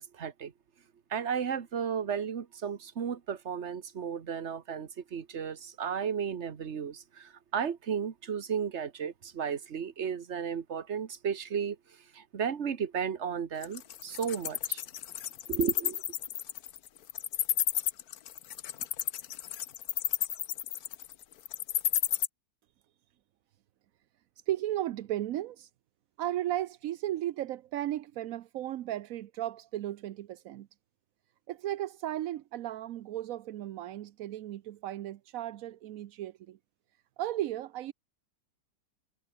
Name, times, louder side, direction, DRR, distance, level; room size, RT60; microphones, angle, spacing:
voice 1, 0.1-0.5 1.1-11.8 12.1-14.8 15.5-16.0, right 7 dB, 40° right, 1.4 m, -34 dB
Wild animals, 13.6-22.3, left 11 dB, 60° left, 1.2 m, -31 dB
voice 2, 24.5-25.7 26.2-30.7 31.5-36.6 37.2-37.9, right 13 dB, 70° right, 0.8 m, -35 dB
omnidirectional pair, 2.0 m